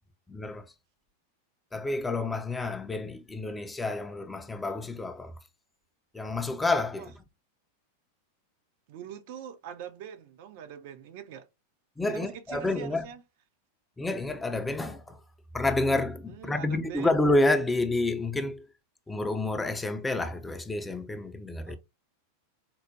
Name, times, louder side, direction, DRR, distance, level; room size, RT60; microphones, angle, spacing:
voice 1, 0.3-0.7 1.7-5.3 6.1-7.1 12.0-13.1 14.0-15.2 15.5-18.7 19.1-21.8, left 2 dB, 10° left, 0.4 m, -29 dB
voice 2, 8.9-11.5 12.1-13.2 16.3-17.1 21.7-21.8, right 9 dB, 50° right, 0.4 m, -43 dB
4.4 x 2.1 x 2.5 m
figure-of-eight pair, 90°, 0 cm